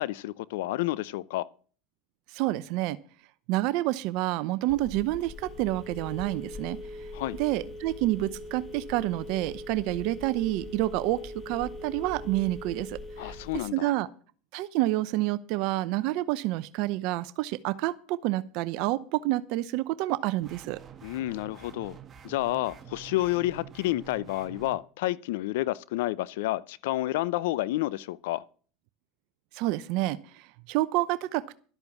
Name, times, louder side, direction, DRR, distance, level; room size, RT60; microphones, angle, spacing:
voice 1, 0.0-1.5 7.1-7.4 13.2-13.9 21.0-22.0 22.2-28.4, left 17 dB, 75° left, 0.6 m, -30 dB
voice 2, 2.3-3.0 3.5-6.8 7.4-13.3 13.7-14.1 14.5-20.8 29.5-31.6, right 17 dB, 60° right, 0.7 m, -28 dB
Telephone, 4.7-13.7, left 1 dB, 30° left, 2.1 m, -41 dB
sound 1, 20.4-24.8, right 9 dB, 30° right, 1.5 m, -48 dB
12.5 x 8.1 x 7.2 m
hypercardioid pair, 105°, 0 cm